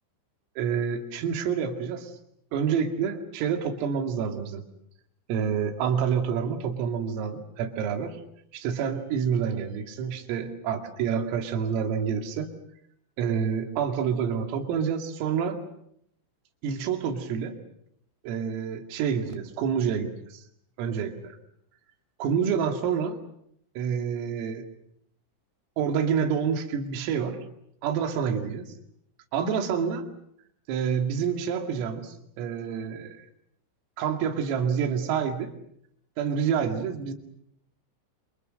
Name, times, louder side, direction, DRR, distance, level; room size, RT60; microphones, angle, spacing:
voice 1, 0.6-2.1 2.5-4.6 5.3-8.2 8.5-12.5 13.2-15.6 16.6-17.6 18.2-20.4 20.8-21.4 22.2-23.2 23.8-24.6 25.8-27.4 27.8-28.7 29.3-30.0 30.7-33.3 34.0-35.5 36.2-37.1, right 7 dB, 80° right, 6 dB, 4.9 m, -28 dB
28.5 x 27.5 x 6.6 m, 0.73 s
omnidirectional pair, 5.9 m